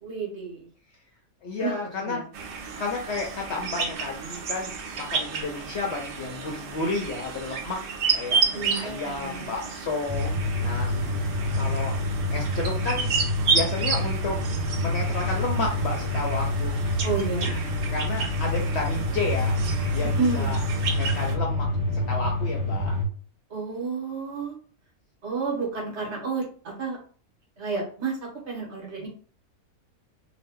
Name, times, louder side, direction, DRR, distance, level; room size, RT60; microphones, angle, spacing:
voice 1, 0.0-0.7 1.6-2.2 8.4-9.6 17.0-17.5 20.2-20.7 23.5-24.6 25.2-27.0 27.6-29.1, right 4 dB, 50° right, -2 dB, 1.3 m, -31 dB
voice 2, 1.4-2.2 2.8-7.8 8.1-10.3 10.6-10.9 11.5-12.0 12.3-13.1 13.5-14.4 14.8-17.0 17.4-19.6 19.9-20.6 20.9-21.7 21.9-23.0 29.0-29.1, left 3 dB, 65° left, 0 dB, 0.7 m, -32 dB
sound 1, 2.3-21.3, right 5 dB, 70° right, 0.5 m, -31 dB
sound 2, 10.1-23.0, left 1 dB, 5° right, 0.7 m, -27 dB
2.8 x 2.2 x 3.5 m, 0.42 s
omnidirectional pair, 1.5 m